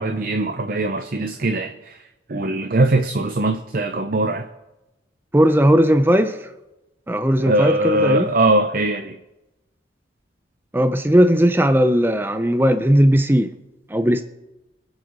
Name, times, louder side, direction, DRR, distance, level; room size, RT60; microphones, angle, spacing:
voice 1, 0.0-2.0 2.3-4.5 7.4-9.2, right 2 dB, 50° right, 7 dB, 0.7 m, -21 dB
voice 2, 5.3-6.5 7.1-8.3 10.7-13.5 13.9-14.2, equal, 10° right, 9 dB, 0.6 m, -17 dB
24.0 x 8.2 x 4.0 m, 0.98 s
head